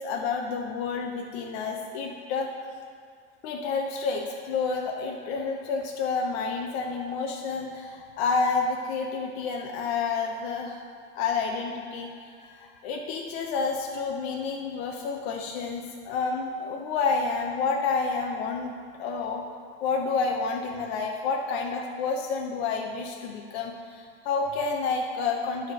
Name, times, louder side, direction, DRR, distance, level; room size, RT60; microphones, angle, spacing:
voice 1, 0.0-2.5 3.4-10.9 11.2-18.7 19.0-19.4 19.8-25.7, left 4 dB, 70° left, 1 dB, 0.8 m, -29 dB
11.0 x 3.7 x 5.6 m, 2.2 s
supercardioid pair, 95°, 31 cm